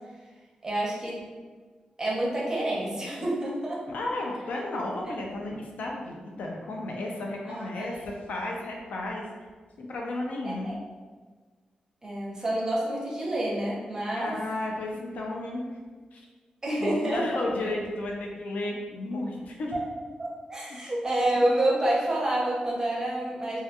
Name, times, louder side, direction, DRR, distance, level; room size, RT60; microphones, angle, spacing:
voice 1, 0.6-1.2 2.0-3.9 7.5-8.1 10.4-10.7 12.0-14.4 16.6-17.5 19.7-19.8 20.2-23.6, right 1 dB, 20° right, -4 dB, 0.6 m, -28 dB
voice 2, 3.9-9.3 9.8-10.7 14.1-15.7 16.1-16.3 16.8-19.7, left 2 dB, 75° left, -1 dB, 0.4 m, -33 dB
2.3 x 2.2 x 2.8 m, 1.5 s
wide cardioid pair, 150°, 3 cm